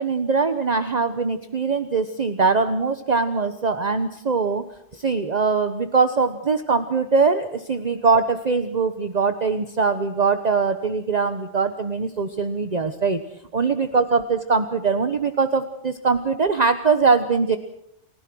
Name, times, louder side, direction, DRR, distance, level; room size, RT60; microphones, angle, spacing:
voice 1, 0.0-4.6 4.9-13.2 13.5-17.6, right 4 dB, 40° right, 8 dB, 1.2 m, -22 dB
30.0 x 16.5 x 6.3 m, 0.76 s
omnidirectional pair, 1.1 m